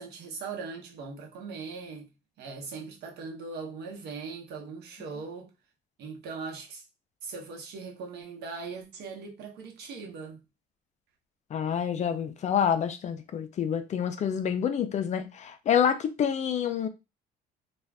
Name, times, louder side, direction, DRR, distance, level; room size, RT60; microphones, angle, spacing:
voice 1, 0.0-2.1 2.4-5.5 6.0-6.8 7.2-10.4, right 4 dB, 75° right, 1.0 m, -40 dB
voice 2, 11.5-16.9, left 8 dB, 45° left, 0.5 m, -27 dB
2.5 x 2.3 x 3.4 m
cardioid pair, 110°, 17 cm